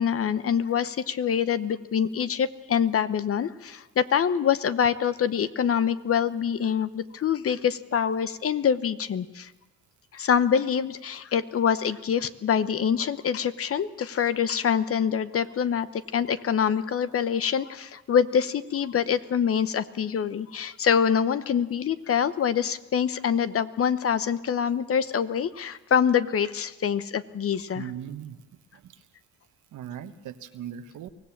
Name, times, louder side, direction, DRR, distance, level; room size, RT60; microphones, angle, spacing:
voice 1, 0.0-9.5 10.1-27.9, left 8 dB, 50° left, 14 dB, 0.9 m, -25 dB
voice 2, 27.7-28.4 28.7-29.0 29.7-31.1, right 10 dB, 75° right, 10 dB, 1.3 m, -39 dB
24.0 x 17.0 x 7.3 m, 1.2 s
cardioid pair, 90°, 30 cm